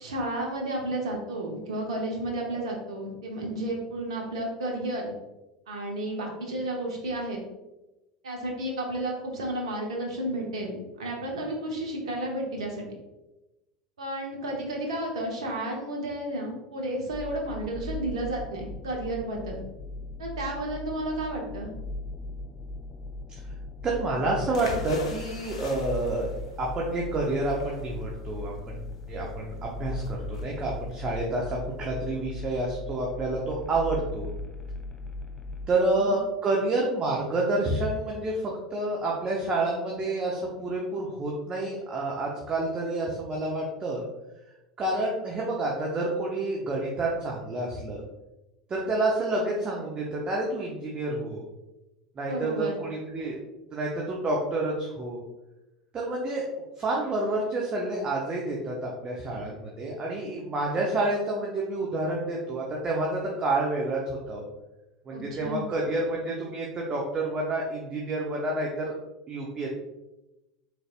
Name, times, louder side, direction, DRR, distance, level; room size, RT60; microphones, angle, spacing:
voice 1, 0.0-5.1 5.7-7.4 8.2-12.8 14.0-19.6 20.2-21.7 35.9-36.1 52.3-52.7 65.1-65.7, right 1 dB, 75° right, 0 dB, 0.9 m, -32 dB
sound 1, 17.1-35.7, left 2 dB, 20° left, 0.4 m, -38 dB
voice 2, 23.8-26.3 26.6-34.3 35.7-44.0 44.8-48.0 48.7-51.4 52.2-53.4 53.7-55.2 55.9-56.4 56.8-64.4 65.1-68.9 69.3-69.7, right 2 dB, 30° right, -2 dB, 0.7 m, -29 dB
sound 2, 24.5-32.2, left 4 dB, 75° left, 0.6 m, -43 dB
4.0 x 3.3 x 2.4 m, 1.0 s
figure-of-eight pair, 80°, 3 cm